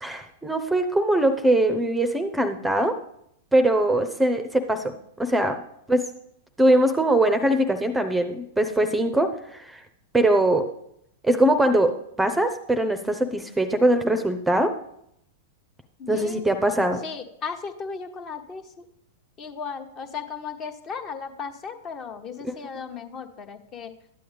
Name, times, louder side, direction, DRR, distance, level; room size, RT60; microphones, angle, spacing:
voice 1, 0.0-3.0 3.5-5.6 5.9-6.0 6.6-9.8 10.1-10.7 11.2-14.7 16.1-17.0 22.4-22.5, right 1 dB, 5° right, 9 dB, 0.7 m, -22 dB
voice 2, 16.0-16.4 17.0-18.8 19.4-23.9, left 5 dB, 30° left, 7 dB, 1.1 m, -36 dB
12.5 x 9.2 x 3.4 m, 0.74 s
figure-of-eight pair, 95°, 0 cm